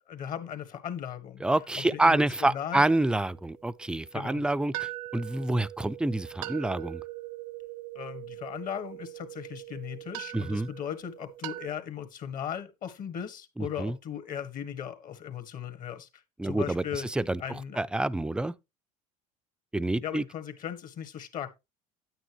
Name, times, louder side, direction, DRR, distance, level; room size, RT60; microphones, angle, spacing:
voice 1, 0.0-2.8 4.1-4.4 8.0-17.8 20.0-21.5, left 9 dB, 55° left, 1.7 m, -38 dB
voice 2, 1.4-7.0 10.3-10.7 13.6-13.9 16.4-17.4 17.8-18.5 19.7-20.2, right 2 dB, 5° right, 0.4 m, -27 dB
sound 1, 1.6-3.2 3.6-3.7 4.7-11.7, right 16 dB, 85° right, 0.9 m, -41 dB
9.3 x 9.0 x 3.0 m
supercardioid pair, 90°, 17 cm